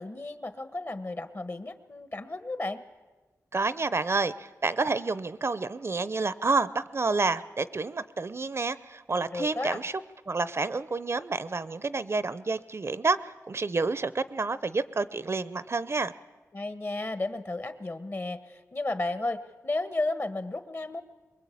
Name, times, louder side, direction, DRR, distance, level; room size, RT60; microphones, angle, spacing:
voice 1, 0.0-2.8 9.3-9.8 16.5-21.0, left 2 dB, 40° left, 10 dB, 1.4 m, -33 dB
voice 2, 3.5-9.9 10.3-16.1, right 3 dB, 50° right, 15 dB, 0.7 m, -29 dB
23.5 x 22.0 x 8.6 m, 1.2 s
wide cardioid pair, 90°, 6 cm